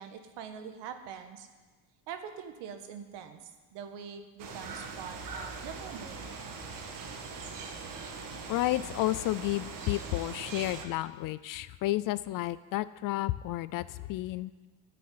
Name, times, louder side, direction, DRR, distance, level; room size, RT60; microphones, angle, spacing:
voice 1, 0.0-1.5 2.1-6.2, right 7 dB, 65° right, 7 dB, 1.7 m, -44 dB
sound 1, 4.4-10.9, right 4 dB, 45° right, 1.7 m, -41 dB
voice 2, 8.5-14.5, left 16 dB, 50° left, 16 dB, 0.4 m, -31 dB
13.5 x 6.8 x 9.5 m, 1.3 s
cardioid pair, 140°, 45 cm